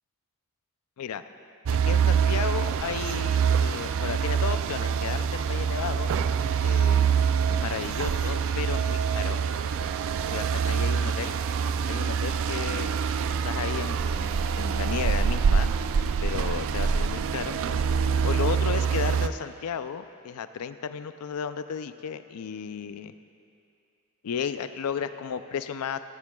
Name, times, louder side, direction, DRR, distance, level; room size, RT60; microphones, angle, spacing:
voice 1, 1.7-6.1 6.6-7.0 7.5-9.4 10.3-11.4 11.9-12.9 13.4-15.7 16.2-17.6 18.2-23.1 24.2-26.0, left 7 dB, 80° left, 12 dB, 0.4 m, -33 dB
sound 1, 1.7-19.3, right 6 dB, 60° right, 0.3 m, -25 dB
14.0 x 13.0 x 2.3 m, 2.5 s
head